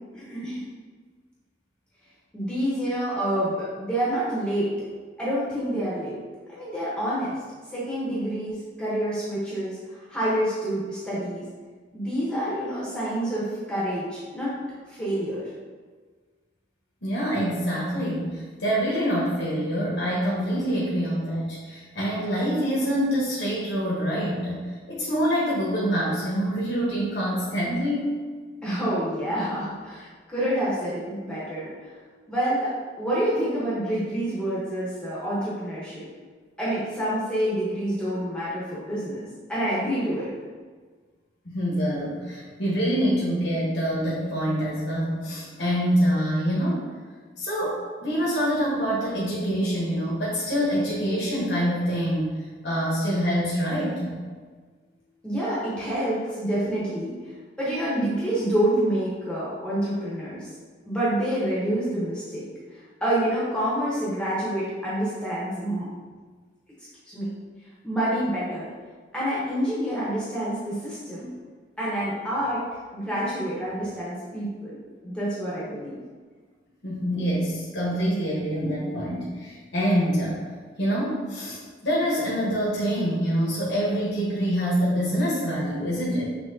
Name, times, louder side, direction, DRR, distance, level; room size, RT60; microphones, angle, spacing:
voice 1, 0.1-0.6 2.3-4.7 5.2-6.2 6.5-7.4 7.7-11.4 11.9-14.5 14.9-15.4 28.6-31.9 32.3-36.1 36.6-40.3 55.2-57.1 57.6-60.5 60.9-65.9 67.1-67.3 67.8-68.7 69.1-71.3 71.8-72.6 72.9-74.8 75.0-76.0, right 1 dB, 5° left, -9 dB, 0.9 m, -27 dB
voice 2, 17.0-28.1 41.4-46.8 47.4-54.2 76.8-80.4 80.8-86.3, equal, 75° left, -7 dB, 1.1 m, -26 dB
6.1 x 2.9 x 2.7 m, 1.5 s
head